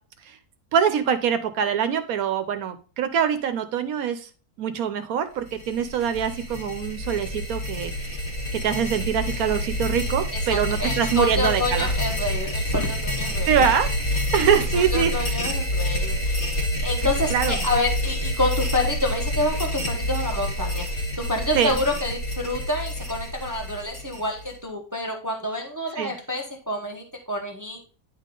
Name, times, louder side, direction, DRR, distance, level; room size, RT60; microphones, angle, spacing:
voice 1, 0.7-4.3 4.6-8.2 8.5-11.9 13.5-13.9 14.3-15.4 17.3-17.6 21.5-21.8 26.0-26.1, right 8 dB, 75° right, 10 dB, 1.1 m, -24 dB
sound 1, 5.5-24.5, left 1 dB, 45° left, 1.6 m, -28 dB
voice 2, 10.3-13.6 14.1-14.2 14.7-27.9, left 1 dB, 15° right, 3 dB, 0.7 m, -28 dB
10.0 x 3.7 x 3.7 m, 0.38 s
omnidirectional pair, 1.6 m